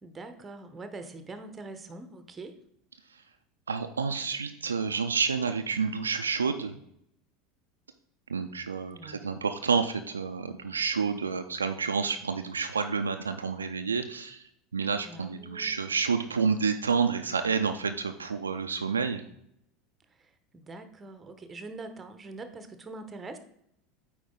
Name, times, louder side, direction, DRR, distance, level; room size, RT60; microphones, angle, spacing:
voice 1, 0.0-2.5 8.9-9.3 15.0-15.8 20.5-23.4, right 3 dB, 20° right, 9 dB, 0.9 m, -43 dB
voice 2, 3.7-6.8 8.3-14.4 14.7-19.2, right 5 dB, 80° right, 7 dB, 0.5 m, -29 dB
8.6 x 4.6 x 3.8 m, 0.71 s
figure-of-eight pair, 75°, 0 cm